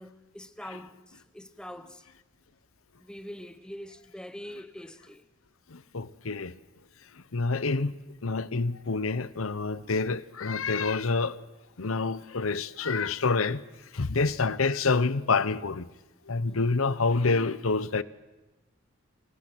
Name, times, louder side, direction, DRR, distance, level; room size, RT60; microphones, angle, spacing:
voice 1, 0.0-2.0 3.0-5.2 16.5-16.7, equal, 5° left, 1.0 m, -44 dB
voice 2, 5.7-6.5 7.3-11.4 11.8-13.6 13.9-15.9 16.3-18.0, left 4 dB, 85° left, 0.9 m, -27 dB
29.5 x 24.5 x 6.2 m
head